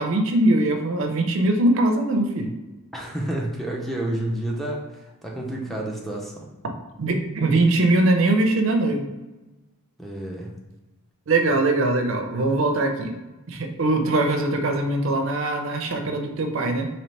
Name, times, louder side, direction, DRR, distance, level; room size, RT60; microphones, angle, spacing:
voice 1, 0.0-2.5 7.0-9.1 11.3-13.1 13.5-16.9, right 2 dB, 60° right, 4 dB, 0.5 m, -21 dB
voice 2, 2.9-4.9 5.2-6.4 10.0-10.5, right 1 dB, ahead, -2 dB, 0.5 m, -29 dB
4.1 x 2.9 x 3.2 m, 1.1 s
head